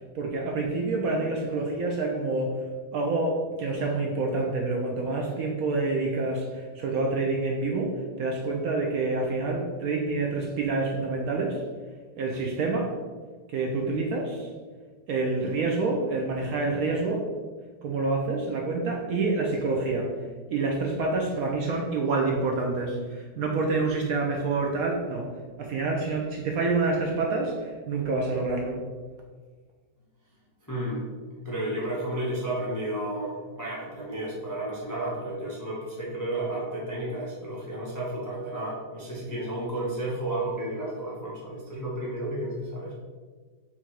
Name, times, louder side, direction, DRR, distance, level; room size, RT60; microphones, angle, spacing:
voice 1, 0.1-2.6 2.9-11.6 12.2-12.9 13.5-14.5 15.1-17.3 17.8-20.1 20.5-25.3 25.6-28.8, right 3 dB, 70° right, 0 dB, 0.9 m, -27 dB
voice 2, 30.7-31.1 31.4-42.9, right 1 dB, 25° left, -6 dB, 0.4 m, -32 dB
3.7 x 2.8 x 4.5 m, 1.5 s
omnidirectional pair, 1.9 m